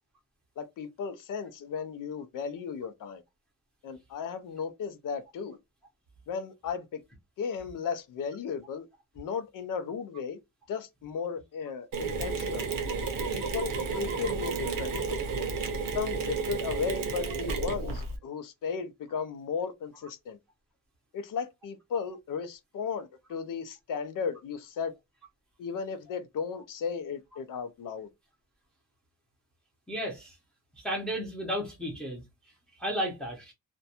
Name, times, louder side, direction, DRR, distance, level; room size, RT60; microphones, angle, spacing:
voice 1, 0.6-3.2 3.8-5.6 6.3-7.0 7.4-8.9 9.2-10.4 10.7-12.7 13.3-15.2 15.9-20.4 21.1-24.9 25.6-28.1, left 6 dB, 70° left, 0.5 m, -35 dB
Mechanisms, 11.9-18.2, right 4 dB, 90° right, 0.7 m, -32 dB
voice 2, 29.9-30.3 30.8-32.2 32.8-33.5, equal, ahead, 0.7 m, -33 dB
2.5 x 2.1 x 2.7 m
wide cardioid pair, 170°, 33 cm